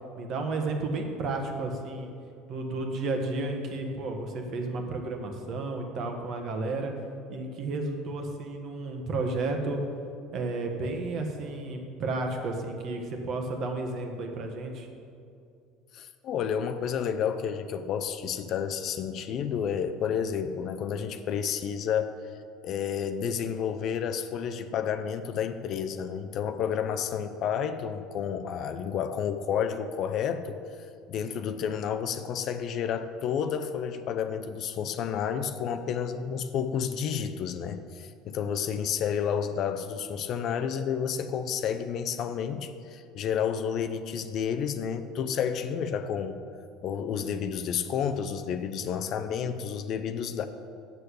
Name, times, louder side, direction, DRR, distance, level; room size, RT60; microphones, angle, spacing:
voice 1, 0.2-2.1 2.5-6.9 7.3-9.8 10.3-14.9, right 2 dB, 45° right, 4 dB, 1.4 m, -32 dB
voice 2, 15.9-22.2 22.6-30.6 31.1-46.5 46.8-50.4, left 7 dB, 45° left, 9 dB, 0.5 m, -30 dB
8.2 x 6.6 x 8.3 m, 2.4 s
cardioid pair, 150°, 0 cm